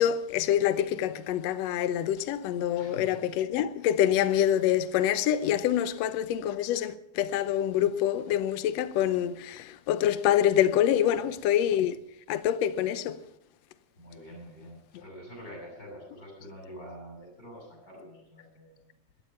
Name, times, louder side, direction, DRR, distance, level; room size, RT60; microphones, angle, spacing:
voice 1, 0.0-12.0 12.3-13.2, left 11 dB, 70° left, 1.8 m, -26 dB
voice 2, 2.8-3.2 5.9-6.1 11.0-11.2 14.0-18.8, equal, 30° left, 7.9 m, -46 dB
16.5 x 13.0 x 5.7 m
omnidirectional pair, 3.3 m